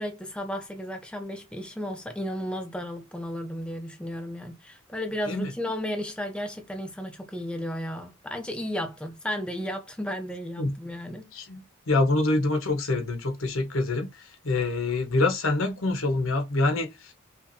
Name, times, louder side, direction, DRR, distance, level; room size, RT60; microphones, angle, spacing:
voice 1, 0.0-11.3, equal, 5° left, 0.5 m, -34 dB
voice 2, 11.3-17.1, left 2 dB, 75° left, 1.1 m, -26 dB
5.6 x 2.5 x 2.7 m
head